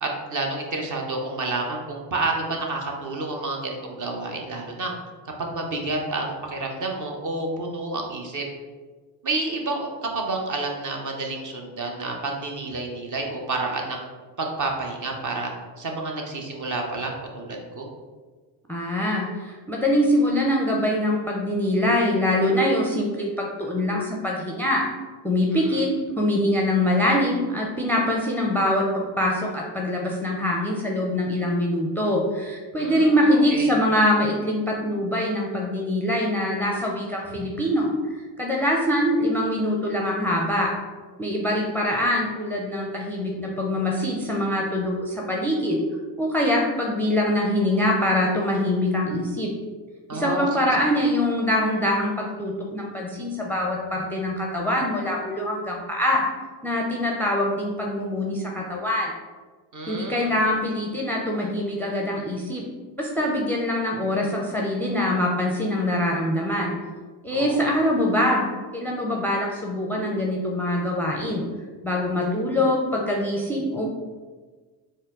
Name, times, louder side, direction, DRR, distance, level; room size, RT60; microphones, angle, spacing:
voice 1, 0.0-4.9 5.4-8.4 9.2-9.9 10.1-14.0 14.4-15.5 15.8-17.9 25.5-25.8 32.8-33.7 50.1-50.8 59.7-60.3 67.3-67.6, right 2 dB, 40° right, 1 dB, 0.8 m, -29 dB
voice 2, 18.7-24.9 25.2-25.9 26.2-38.0 38.4-40.7 41.2-45.8 46.2-49.5 50.1-56.3 56.6-59.1 59.9-62.6 63.0-66.7 67.2-71.4 71.8-73.8, left 1 dB, 5° left, -1 dB, 0.5 m, -24 dB
4.2 x 2.0 x 3.7 m, 1.4 s
supercardioid pair, 65°, 49 cm